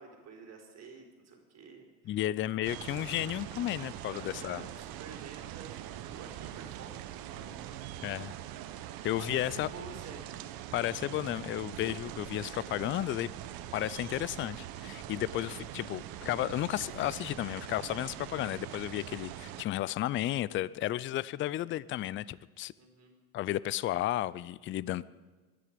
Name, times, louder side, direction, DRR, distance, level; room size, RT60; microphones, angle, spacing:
voice 1, 0.0-2.2 4.1-7.8 8.1-8.3 8.9-10.3 15.2-15.5 22.8-23.1, right 5 dB, 35° right, 1 dB, 4.7 m, -50 dB
voice 2, 2.1-4.7 8.0-8.3 9.0-9.7 10.7-13.3 13.7-22.7 23.3-25.0, left 14 dB, 30° left, 20 dB, 0.5 m, -33 dB
sound 1, 2.6-19.6, right 12 dB, 55° right, 1.3 m, -43 dB
24.0 x 10.0 x 5.2 m, 1.3 s
hypercardioid pair, 85°, 44 cm